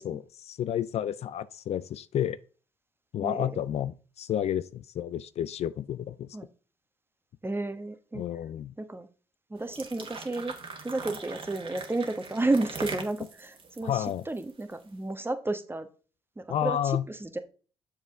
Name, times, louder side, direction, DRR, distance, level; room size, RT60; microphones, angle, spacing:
voice 1, 0.0-2.4 3.1-6.4 8.1-8.7 13.8-14.2 16.5-17.1, left 10 dB, 60° left, 0.4 m, -31 dB
voice 2, 3.2-3.6 6.3-6.5 7.4-8.2 8.8-9.1 9.5-10.5 10.8-15.9 16.4-17.4, right 2 dB, 20° right, 1.1 m, -32 dB
sound 1, 9.6-14.8, right 4 dB, 45° right, 1.8 m, -41 dB
7.1 x 5.6 x 3.7 m
hypercardioid pair, 45°, 12 cm